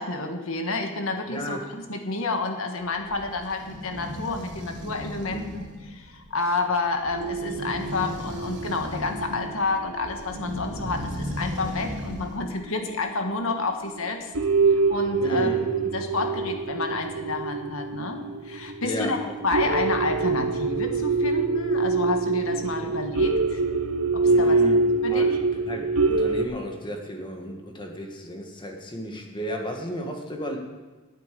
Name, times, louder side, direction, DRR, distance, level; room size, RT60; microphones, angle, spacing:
voice 1, 0.0-14.3 14.7-15.5 15.9-19.2 19.4-23.6 24.1-24.6 25.0-25.4, left 3 dB, 70° left, 5 dB, 1.6 m, -30 dB
voice 2, 1.3-1.6 5.3-5.4 15.2-15.6 18.8-19.2 22.8-22.9 24.3-24.8 25.1-30.6, equal, 20° left, 2 dB, 1.7 m, -34 dB
sound 1, 2.8-12.5, left 1 dB, 55° right, 1.7 m, -36 dB
sound 2, 7.1-11.1 11.5-11.6 12.7-12.8 13.3-13.4 13.9-14.1 14.3-26.5, right 3 dB, 75° right, 1.0 m, -25 dB
9.2 x 8.9 x 8.4 m, 1.2 s
head